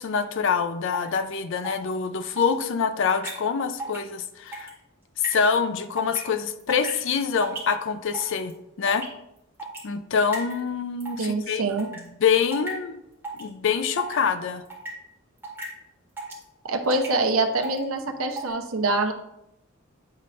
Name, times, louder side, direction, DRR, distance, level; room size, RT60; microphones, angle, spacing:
voice 1, 0.0-4.7 5.2-8.5 8.8-9.1 9.8-11.6 12.0-13.0 13.4-14.6, left 6 dB, 65° left, 10 dB, 0.5 m, -25 dB
sound 1, 0.9-1.2 1.6-1.9 2.4-2.5 3.1-3.3 3.7-4.0 4.2-4.7 5.2-5.4 6.0-6.2 6.6-7.0 7.4-7.6 8.1-8.5 8.9-9.1 9.6-9.8 10.3-10.6 11.0-11.3 11.8-12.0 12.5-12.7 13.2-13.5 14.0-14.2 14.6-14.9 15.4-15.7 16.2-16.4 16.9-17.1 17.6-17.8 18.3-18.5, right 2 dB, 10° right, 2.0 m, -35 dB
voice 2, 11.2-11.9 16.7-19.1, right 2 dB, 80° right, 5 dB, 0.8 m, -25 dB
9.2 x 4.1 x 3.2 m, 0.82 s
head